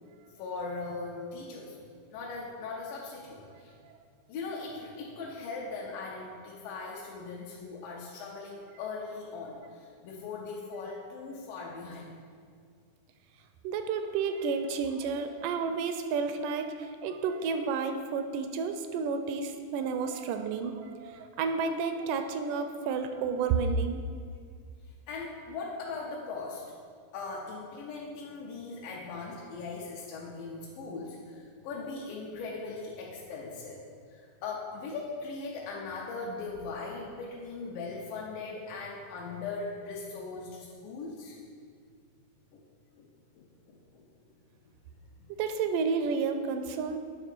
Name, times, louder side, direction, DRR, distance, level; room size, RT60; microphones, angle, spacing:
voice 1, 0.4-1.8 2.1-3.8 4.3-12.2 25.1-26.6 27.1-33.8 34.1-41.4 42.5-42.6 43.0-43.1 43.4-44.0 44.6-44.7 45.2-45.3, left 4 dB, 85° left, -3 dB, 2.5 m, -39 dB
voice 2, 13.6-24.0 45.3-47.0, right 5 dB, 80° right, 8 dB, 2.0 m, -31 dB
9.2 x 3.5 x 5.9 m, 2.1 s
omnidirectional pair, 3.8 m